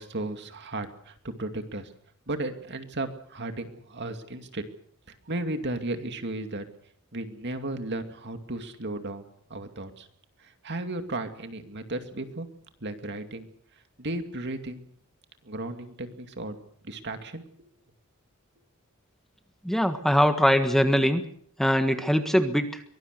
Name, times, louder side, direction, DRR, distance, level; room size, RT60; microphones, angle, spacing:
voice 1, 0.0-1.9 2.3-4.6 5.3-6.7 7.1-9.2 9.5-10.1 10.4-12.5 12.8-13.5 14.0-14.9 15.4-16.6 16.8-17.7, right 2 dB, 55° right, 7 dB, 2.4 m, -34 dB
voice 2, 19.6-21.2 21.6-22.8, equal, ahead, 7 dB, 1.5 m, -22 dB
23.5 x 19.5 x 6.7 m, 0.63 s
head